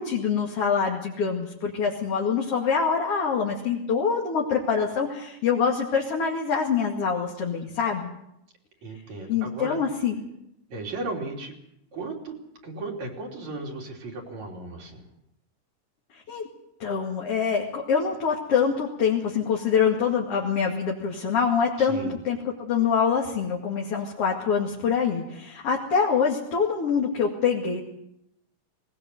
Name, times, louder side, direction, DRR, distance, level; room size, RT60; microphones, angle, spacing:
voice 1, 0.0-8.1 9.3-10.2 16.1-16.4 16.8-27.8, left 6 dB, 50° left, -1 dB, 3.1 m, -25 dB
voice 2, 8.8-9.8 10.7-11.5 11.9-12.4 12.6-15.0 21.8-22.2, right 2 dB, 60° right, 0 dB, 4.6 m, -35 dB
19.5 x 19.5 x 7.9 m, 0.81 s
omnidirectional pair, 3.7 m